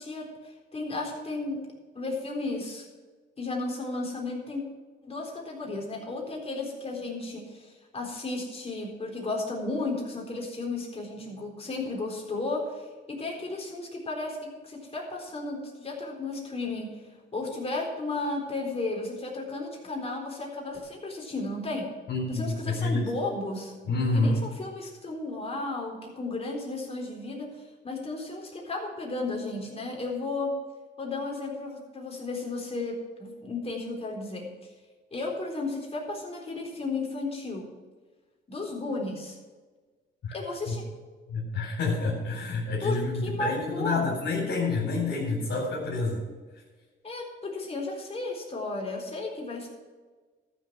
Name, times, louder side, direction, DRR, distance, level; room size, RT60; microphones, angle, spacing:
voice 1, 0.0-1.6 1.9-2.9 3.4-4.6 5.0-17.0 17.3-21.9 22.3-23.7 24.1-30.5 31.0-34.5 35.1-37.7 38.5-39.4 40.3-40.9 42.8-44.1 47.0-49.7, left 2 dB, 30° left, -1 dB, 4.0 m, -34 dB
voice 2, 22.1-23.1 23.8-24.4 40.2-40.3 40.7-40.8 41.3-46.2, left 3 dB, 65° left, -4 dB, 4.2 m, -28 dB
13.5 x 6.9 x 6.1 m, 1.4 s
cardioid pair, 90°, 20 cm